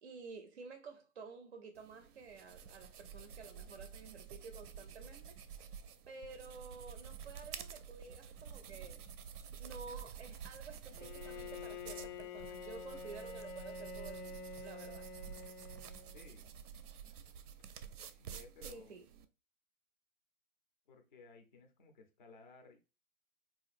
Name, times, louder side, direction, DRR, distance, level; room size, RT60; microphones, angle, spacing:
voice 1, 0.0-5.4 6.1-9.1 9.6-15.1 18.6-19.1, right 4 dB, 45° right, 0.4 m, -52 dB
sound 1, 1.8-19.2, right 7 dB, 90° right, 0.6 m, -50 dB
Bowed string instrument, 10.9-16.4, left 4 dB, 90° left, 0.5 m, -48 dB
voice 2, 16.1-16.5 18.2-19.0 20.9-22.8, left 3 dB, 35° left, 0.4 m, -58 dB
3.9 x 2.4 x 2.4 m
hypercardioid pair, 155°, 45 cm